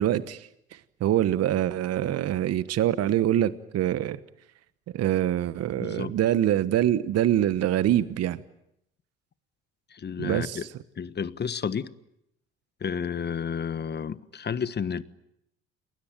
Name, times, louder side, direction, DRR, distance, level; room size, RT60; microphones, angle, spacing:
voice 1, 0.0-4.2 4.9-8.4 10.2-10.7, right 12 dB, 55° right, 1.2 m, -25 dB
voice 2, 5.7-6.1 9.9-10.7 11.0-11.9 12.8-15.0, left 7 dB, 35° left, 1.3 m, -31 dB
29.5 x 20.5 x 9.0 m
hypercardioid pair, 65°, 31 cm